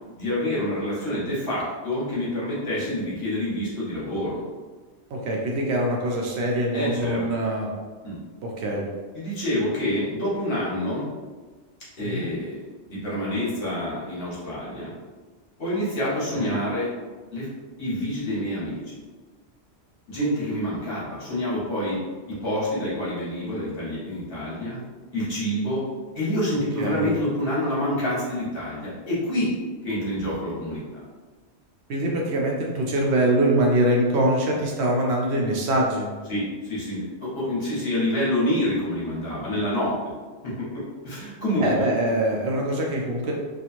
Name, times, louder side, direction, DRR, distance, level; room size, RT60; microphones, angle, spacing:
voice 1, 0.1-4.4 6.7-7.3 8.0-8.2 9.1-11.1 12.0-12.6 12.9-14.9 15.6-16.9 17.3-17.5 17.8-19.0 20.1-22.0 22.3-24.8 25.1-25.8 26.1-29.5 29.8-31.0 36.3-39.9 40.4-41.9, left 1 dB, 55° left, -8 dB, 1.1 m, -27 dB
voice 2, 5.1-7.7 8.4-8.9 12.0-12.3 16.4-16.6 26.8-27.1 31.9-36.1 41.6-43.3, right 1 dB, 70° right, -1 dB, 0.8 m, -24 dB
2.9 x 2.4 x 2.4 m, 1.4 s
omnidirectional pair, 1.2 m